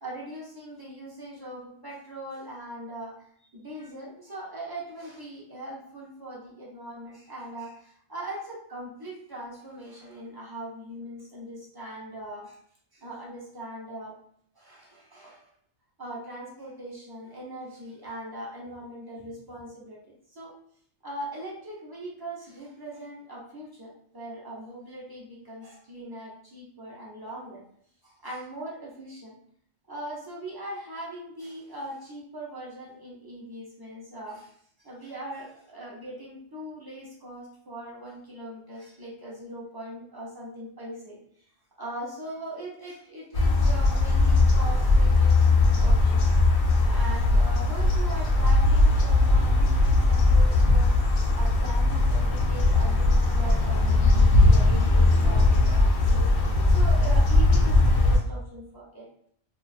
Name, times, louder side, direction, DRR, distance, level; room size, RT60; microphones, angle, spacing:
voice 1, 0.0-3.1 3.5-12.6 12.9-14.1 14.6-15.5 16.0-20.5 21.0-27.6 28.0-29.4 29.9-34.5 34.8-41.2 41.8-45.4 45.8-46.3 46.7-50.9 51.3-59.1, right 1 dB, 35° right, -5 dB, 0.3 m, -40 dB
sound 1, 43.3-58.2, left 2 dB, 60° left, 0.6 m, -20 dB
2.3 x 2.2 x 2.4 m, 0.66 s
omnidirectional pair, 1.2 m